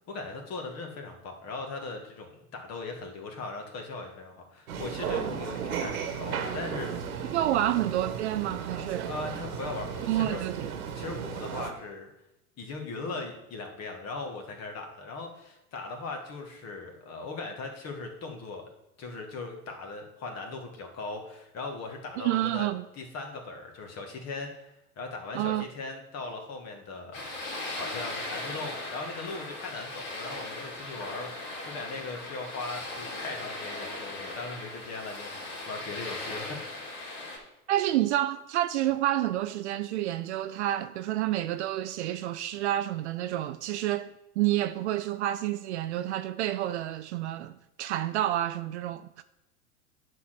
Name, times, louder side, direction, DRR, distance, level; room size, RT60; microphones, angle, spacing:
voice 1, 0.1-6.9 7.5-7.7 9.0-10.4 10.9-12.1 12.6-18.6 19.0-22.7 22.9-27.2 27.8-36.6, left 3 dB, 35° left, 2.1 m, -39 dB
sound 1, 4.7-11.7, right 7 dB, 65° right, 1.4 m, -35 dB
voice 2, 7.3-9.1 10.1-10.7 22.2-22.8 25.3-25.7 37.7-47.5 47.8-49.2, right 13 dB, 50° right, 0.5 m, -29 dB
sound 2, 27.1-37.4, left 2 dB, 55° left, 3.4 m, -38 dB
9.4 x 4.5 x 6.6 m
hypercardioid pair, 95°, 46 cm